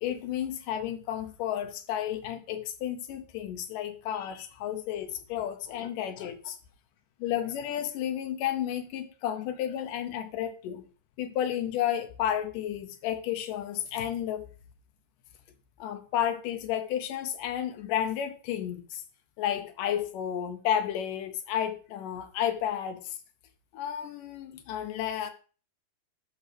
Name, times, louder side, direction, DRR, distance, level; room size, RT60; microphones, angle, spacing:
voice 1, 0.0-6.6 7.2-10.9 11.2-14.5 15.8-19.0 19.4-23.2 23.7-25.3, left 10 dB, 75° left, 2.2 m, -32 dB
12.5 x 6.0 x 3.3 m
omnidirectional pair, 3.9 m